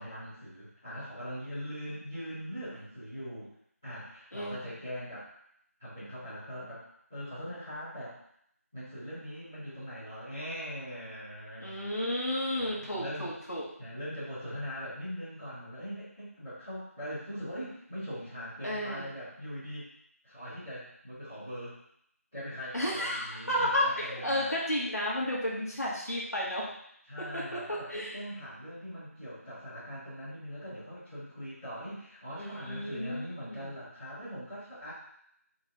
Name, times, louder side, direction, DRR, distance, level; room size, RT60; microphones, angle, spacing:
voice 1, 0.0-3.5 3.8-5.3 5.8-6.8 7.1-8.2 8.7-11.8 12.6-13.3 13.8-19.9 20.2-21.8 22.3-24.5 27.1-34.9, equal, 10° left, -20 dB, 1.3 m, -41 dB
voice 2, 4.3-4.6 11.6-13.6 18.6-19.1 22.7-26.7 27.2-28.1 32.4-33.7, left 1 dB, 85° left, -6 dB, 1.7 m, -32 dB
3.9 x 3.0 x 3.7 m, 0.71 s
figure-of-eight pair, 175°, 8 cm